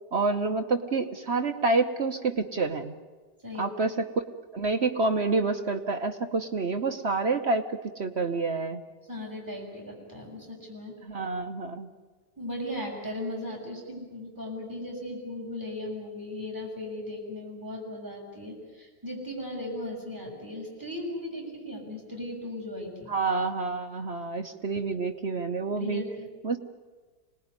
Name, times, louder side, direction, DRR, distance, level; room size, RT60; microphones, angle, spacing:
voice 1, 0.1-3.0 3.6-3.9 4.5-8.8 11.0-11.9 23.1-26.0 26.4-26.6, right 3 dB, 45° right, 5 dB, 0.8 m, -28 dB
voice 2, 3.4-3.7 9.0-10.9 12.4-23.1 25.7-26.3, left 1 dB, 10° right, -2 dB, 7.0 m, -37 dB
25.5 x 19.5 x 9.6 m, 1.4 s
omnidirectional pair, 2.3 m